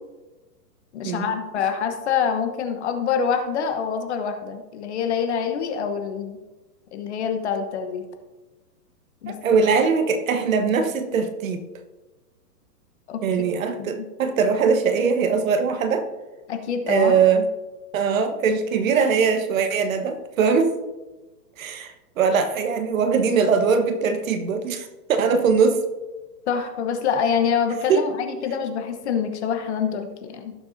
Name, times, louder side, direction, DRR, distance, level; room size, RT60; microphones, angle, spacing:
voice 1, 0.9-6.4 6.9-8.0 9.2-9.4 13.1-13.2 13.8-14.1 16.5-17.2 26.5-30.5, left 7 dB, 40° left, 7 dB, 1.2 m, -26 dB
voice 2, 9.3-11.6 13.2-16.1 16.9-17.5 17.9-20.7 21.6-25.8 27.9-28.0, right 5 dB, 55° right, 7 dB, 1.3 m, -21 dB
17.0 x 7.0 x 2.7 m, 1.2 s
hypercardioid pair, 160°, 49 cm